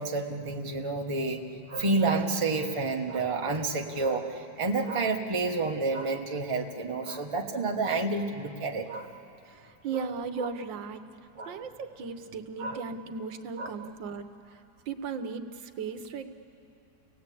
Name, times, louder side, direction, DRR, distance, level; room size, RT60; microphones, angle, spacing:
voice 1, 0.0-9.1 9.9-10.1 11.4-11.6 12.6-12.8 13.6-13.7, right 3 dB, 20° right, 2 dB, 1.1 m, -29 dB
voice 2, 9.5-11.0 11.4-16.3, right 5 dB, 85° right, 9 dB, 1.7 m, -37 dB
29.5 x 18.0 x 8.5 m, 2.8 s
omnidirectional pair, 2.0 m